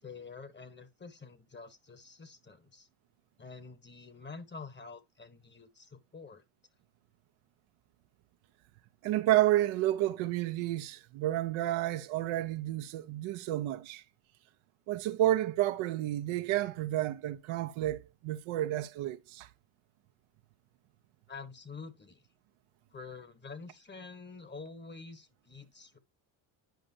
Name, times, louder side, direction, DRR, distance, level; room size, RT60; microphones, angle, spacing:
voice 1, 0.0-2.9 3.4-6.4 21.3-22.2 22.9-26.0, left 4 dB, 20° left, 1.1 m, -47 dB
voice 2, 9.0-14.0 14.9-19.5, right 14 dB, 75° right, 0.8 m, -30 dB
10.5 x 5.0 x 2.7 m
supercardioid pair, 80°, 48 cm